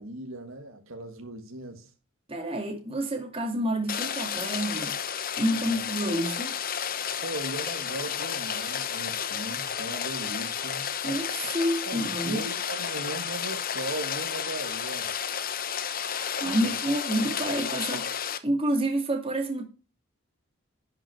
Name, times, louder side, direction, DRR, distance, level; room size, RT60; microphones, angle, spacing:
voice 1, 0.0-1.9 5.5-5.8 7.2-10.9 11.8-15.1 16.6-16.7, right 2 dB, 85° right, 1.7 m, -38 dB
voice 2, 2.3-5.0 5.4-6.6 11.0-12.4 16.4-19.6, right 1 dB, 30° right, 2.3 m, -29 dB
Rain, 3.9-18.4, left 8 dB, 45° left, 0.9 m, -32 dB
11.0 x 5.8 x 4.7 m
head